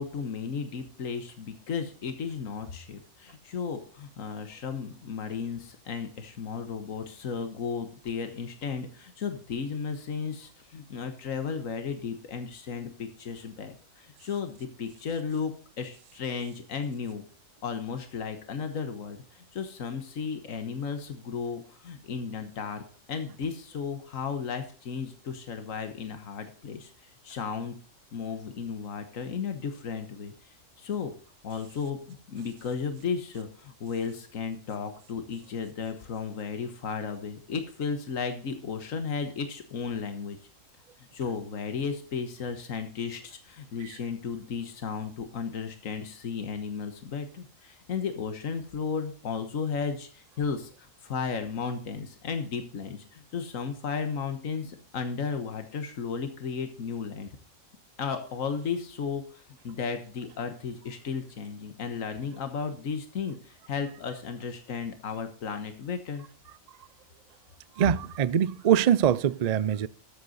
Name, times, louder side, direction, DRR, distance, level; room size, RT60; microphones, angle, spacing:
voice 1, 0.0-15.5 15.8-17.2 17.6-22.8 23.1-26.9 27.2-27.7 28.1-30.3 30.8-31.1 31.4-40.4 41.1-57.3 58.0-66.2, left 5 dB, 85° left, 1.6 m, -34 dB
voice 2, 67.8-69.9, right 9 dB, 65° right, 0.4 m, -23 dB
13.5 x 8.0 x 4.0 m
omnidirectional pair, 1.4 m